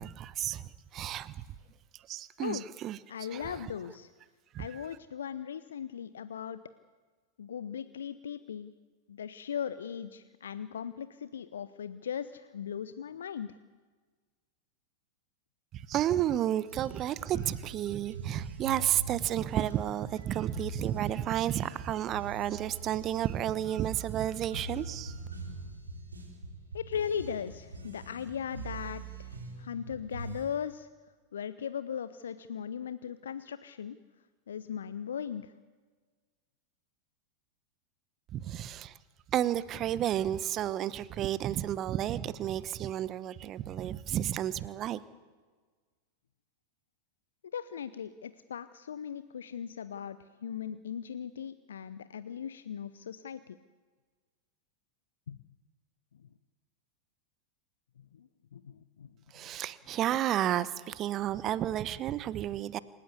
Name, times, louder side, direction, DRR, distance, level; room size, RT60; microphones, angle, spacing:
voice 1, 0.0-1.4 2.1-3.0 3.3-3.7 4.5-4.9 15.7-25.1 38.3-38.9 39.3-45.0 59.3-62.8, right 11 dB, 30° right, 17 dB, 0.9 m, -32 dB
voice 2, 3.1-4.1 4.6-6.6 7.4-8.7 9.1-13.5 26.7-30.9 31.3-34.0 34.5-35.5 47.5-53.6 55.3-55.4 58.1-59.1, left 8 dB, 65° left, 13 dB, 0.8 m, -38 dB
sound 1, 16.7-30.4, right 3 dB, 75° right, 4.2 m, -44 dB
27.5 x 15.0 x 8.4 m, 1.4 s
figure-of-eight pair, 90°, 0 cm